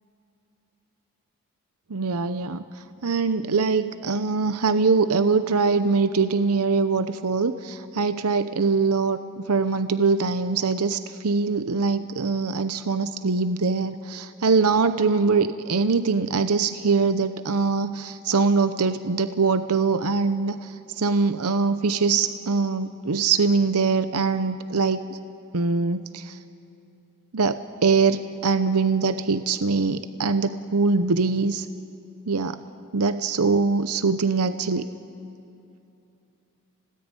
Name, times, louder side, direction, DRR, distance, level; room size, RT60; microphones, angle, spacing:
voice 1, 1.9-25.2 25.5-26.4 27.3-31.7 32.3-32.6 32.9-34.9, right 4 dB, 85° right, 10 dB, 0.8 m, -23 dB
29.5 x 19.0 x 9.1 m, 2.9 s
head